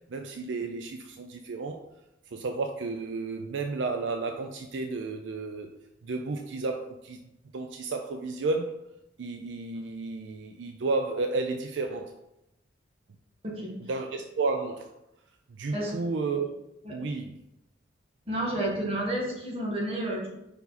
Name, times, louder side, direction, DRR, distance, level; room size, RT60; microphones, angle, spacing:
voice 1, 0.0-1.8 2.3-5.7 6.0-7.2 7.5-8.7 9.2-12.1 13.9-14.9 15.6-16.5 16.9-17.4, right 3 dB, 70° right, 5 dB, 0.4 m, -32 dB
voice 2, 18.3-20.3, right 1 dB, 30° right, -3 dB, 1.7 m, -30 dB
5.2 x 4.7 x 4.1 m, 0.87 s
head